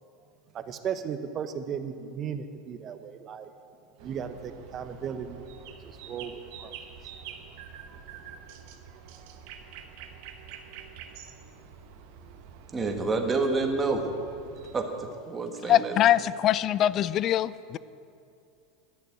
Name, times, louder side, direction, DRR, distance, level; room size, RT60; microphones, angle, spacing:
voice 1, 0.5-3.5 4.0-5.5 5.8-6.7 7.5-8.0, right 7 dB, 35° right, 10 dB, 0.9 m, -36 dB
sound 1, 4.0-14.8, right 7 dB, 65° right, 1.1 m, -47 dB
voice 2, 12.7-14.0 14.7-15.9, right 3 dB, 20° right, 3 dB, 1.6 m, -28 dB
voice 3, 15.7-17.8, left 12 dB, 40° left, 18 dB, 0.4 m, -23 dB
11.5 x 6.8 x 9.5 m, 2.5 s
supercardioid pair, 120°, 0 cm